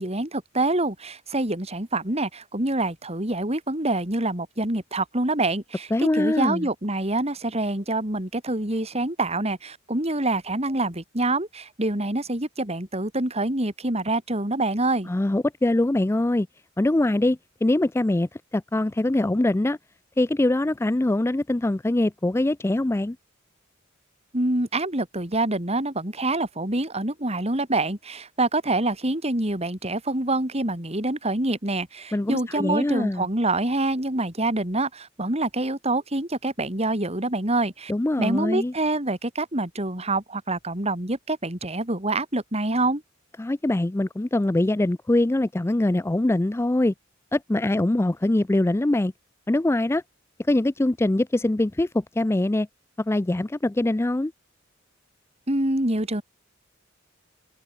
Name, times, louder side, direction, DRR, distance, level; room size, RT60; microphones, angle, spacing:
voice 1, 0.0-15.1 24.3-37.9 38.2-43.0 55.5-56.2, right 2 dB, 30° right, 3.8 m, -26 dB
voice 2, 5.9-6.7 15.1-16.5 16.8-19.8 20.2-23.2 32.1-33.3 37.9-38.7 43.4-46.9 47.3-49.1 49.5-50.0 50.5-52.7 53.0-54.3, left 1 dB, 10° left, 0.4 m, -23 dB
head